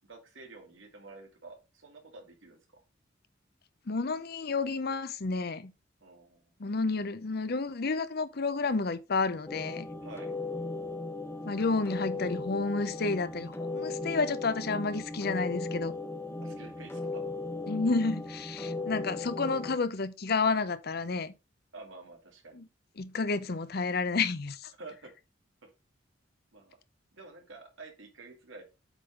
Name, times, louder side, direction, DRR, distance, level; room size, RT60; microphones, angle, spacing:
voice 1, 0.1-2.6 6.0-6.4 10.0-10.3 16.4-17.2 21.7-22.6 24.8-25.1 26.5-26.8 27.1-28.6, right 3 dB, 80° right, 2.4 m, -49 dB
voice 2, 3.9-5.7 6.6-9.9 11.5-15.9 17.7-21.3 22.5-22.7 23.0-24.7, left 4 dB, 55° left, 0.7 m, -30 dB
sound 1, 9.5-19.8, left 2 dB, 10° left, 0.6 m, -37 dB
8.2 x 3.8 x 4.9 m
head